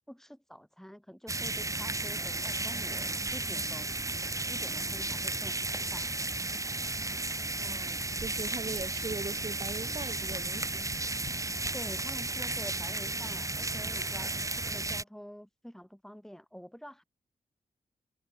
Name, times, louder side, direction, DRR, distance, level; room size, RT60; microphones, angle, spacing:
voice 1, 0.1-3.9 4.5-6.1 11.7-17.0, equal, 5° left, 4.9 m, -47 dB
sound 1, 1.3-15.0, right 2 dB, 20° right, 1.1 m, -34 dB
voice 2, 7.6-10.8, right 3 dB, 35° right, 2.7 m, -41 dB
Tap, 9.1-11.9 12.7-12.8 13.1-13.2, left 7 dB, 80° left, 2.2 m, -52 dB
cardioid pair, 80°, 15 cm